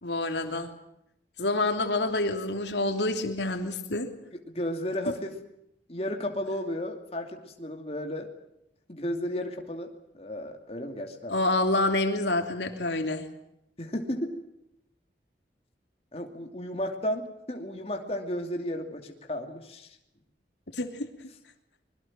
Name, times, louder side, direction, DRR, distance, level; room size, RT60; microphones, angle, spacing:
voice 1, 0.0-0.7 1.4-4.1 11.3-13.3 20.8-21.1, left 2 dB, 85° left, 5 dB, 3.0 m, -27 dB
voice 2, 4.3-5.4 5.9-8.3 8.9-9.9 10.1-11.4 13.8-14.4 16.1-20.0, left 1 dB, 35° left, 3 dB, 2.7 m, -33 dB
25.0 x 22.0 x 7.6 m, 0.80 s
head